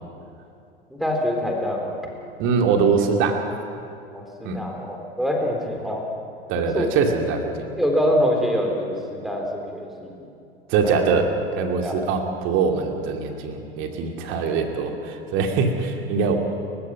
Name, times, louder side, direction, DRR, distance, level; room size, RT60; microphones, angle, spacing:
voice 1, 0.9-2.0 4.1-6.1 6.7-6.9 7.8-10.3 10.8-10.9 11.8-11.9 14.3-14.5, equal, ahead, 1 dB, 3.8 m, -25 dB
voice 2, 2.4-3.5 4.4-4.6 6.5-7.7 10.7-11.3 11.6-16.4, right 5 dB, 40° right, 4 dB, 2.6 m, -23 dB
29.5 x 15.5 x 5.9 m, 2.6 s
figure-of-eight pair, 85°, 30 cm